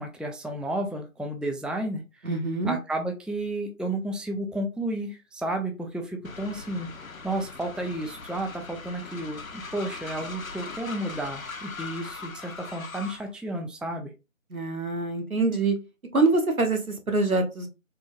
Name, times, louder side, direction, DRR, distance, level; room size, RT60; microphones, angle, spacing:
voice 1, 0.0-2.0 2.7-6.9 7.2-14.1, right 1 dB, ahead, 3 dB, 0.4 m, -32 dB
voice 2, 2.2-2.8 14.5-15.8 16.1-17.7, right 3 dB, 80° right, 4 dB, 1.0 m, -25 dB
Train, 6.2-13.3, left 4 dB, 75° left, 0.6 m, -40 dB
3.7 x 2.3 x 2.5 m, 0.28 s
figure-of-eight pair, 180°, 42 cm